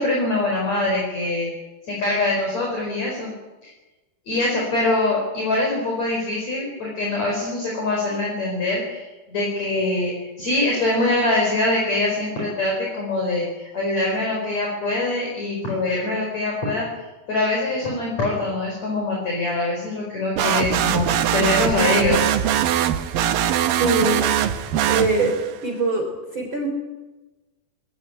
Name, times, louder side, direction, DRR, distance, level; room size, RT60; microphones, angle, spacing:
voice 1, 0.0-1.5 1.9-3.3 3.6-3.7 4.3-16.9 17.3-22.3, left 2 dB, 40° left, -1 dB, 5.8 m, -23 dB
sound 1, 20.4-25.6, right 10 dB, 65° right, 2.6 m, -22 dB
voice 2, 23.7-24.2 24.9-25.3 25.6-26.7, right 3 dB, 30° right, 3 dB, 3.7 m, -22 dB
21.0 x 18.5 x 9.9 m, 1.1 s
omnidirectional pair, 4.9 m